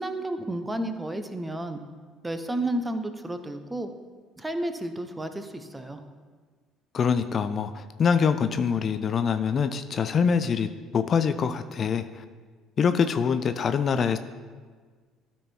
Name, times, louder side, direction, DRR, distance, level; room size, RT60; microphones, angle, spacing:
voice 1, 0.0-1.8 2.2-3.9 4.4-6.0, right 1 dB, 15° right, 8 dB, 0.9 m, -31 dB
voice 2, 6.9-12.2 12.8-14.2, left 6 dB, 45° left, 10 dB, 0.4 m, -24 dB
13.0 x 4.4 x 4.4 m, 1.5 s
figure-of-eight pair, 55°, 0 cm